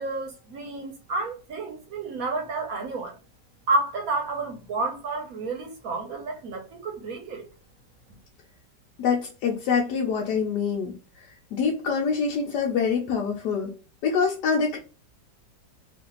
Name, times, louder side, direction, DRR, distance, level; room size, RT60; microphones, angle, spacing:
voice 1, 0.0-3.2 3.7-7.4, right 3 dB, 60° right, 1.1 m, -30 dB
voice 2, 9.0-11.0 11.5-13.7 14.0-14.8, left 6 dB, 75° left, 1.2 m, -25 dB
3.1 x 2.5 x 2.9 m
omnidirectional pair, 1.9 m